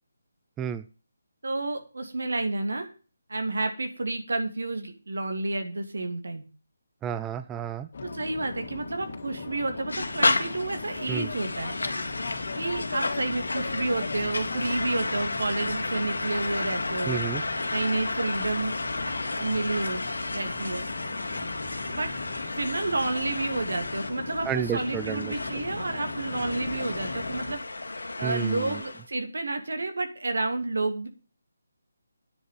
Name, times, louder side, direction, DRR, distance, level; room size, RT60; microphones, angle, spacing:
voice 1, 1.4-2.9 3.3-6.4 8.0-11.7 12.6-17.2 17.7-18.7 19.4-20.0 20.3-20.9 21.9-22.1 22.5-27.6 28.2-31.1, right 2 dB, 75° right, 6 dB, 3.0 m, -30 dB
voice 2, 7.0-7.9 11.1-11.3 17.1-17.4 24.5-25.3 28.2-28.8, right 8 dB, 10° right, 12 dB, 0.4 m, -31 dB
sound 1, 7.9-27.5, left 3 dB, 55° left, 2.9 m, -38 dB
sound 2, 9.9-29.0, left 2 dB, 80° left, 2.0 m, -32 dB
9.7 x 6.5 x 7.8 m, 0.35 s
figure-of-eight pair, 155°, 0 cm